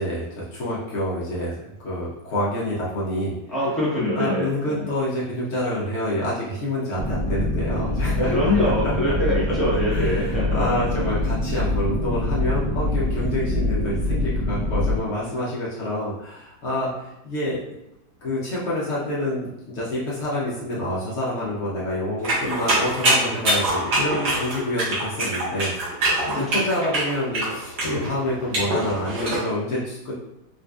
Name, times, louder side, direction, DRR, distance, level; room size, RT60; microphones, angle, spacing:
voice 1, 0.0-3.3 4.2-8.7 9.9-17.6 18.2-30.1, left 1 dB, 75° left, -7 dB, 0.6 m, -27 dB
voice 2, 3.5-4.7 8.3-10.8 26.3-26.6, left 1 dB, ahead, -10 dB, 0.4 m, -24 dB
sound 1, 7.0-15.0, left 1 dB, 45° right, 1.3 m, -24 dB
sound 2, 22.2-29.4, right 1 dB, 65° right, 1.9 m, -24 dB
3.9 x 2.6 x 2.3 m, 0.89 s
omnidirectional pair, 2.2 m